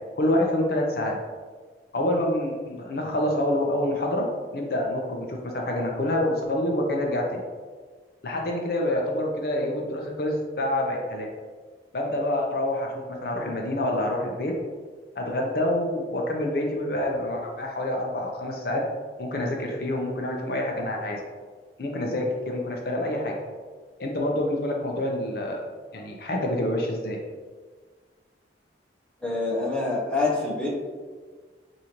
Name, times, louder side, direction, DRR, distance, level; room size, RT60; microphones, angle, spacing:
voice 1, 0.2-1.2 1.9-4.3 4.5-7.4 8.2-11.3 11.9-12.9 13.2-14.5 15.2-18.8 19.2-21.2 21.8-23.3 24.0-25.6 25.9-27.2, left 1 dB, 55° left, 0 dB, 0.5 m, -27 dB
voice 2, 29.2-30.7, left 3 dB, 5° left, -6 dB, 0.8 m, -26 dB
4.9 x 2.6 x 2.9 m, 1.5 s
head